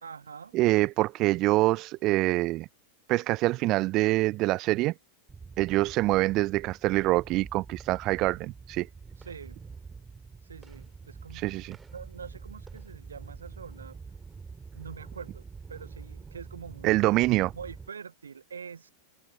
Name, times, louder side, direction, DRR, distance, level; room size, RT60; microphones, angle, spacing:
voice 1, 0.0-0.6 9.2-9.6 10.4-11.4 11.9-14.0 14.7-15.4 15.7-18.9, right 6 dB, 70° right, 1.0 m, -44 dB
voice 2, 0.5-2.7 3.1-4.9 5.6-8.9 11.3-11.8 16.8-17.5, right 19 dB, 40° right, 0.3 m, -25 dB
sound 1, 5.3-17.9, right 5 dB, 15° right, 3.9 m, -46 dB
open air
figure-of-eight pair, 90°, 0 cm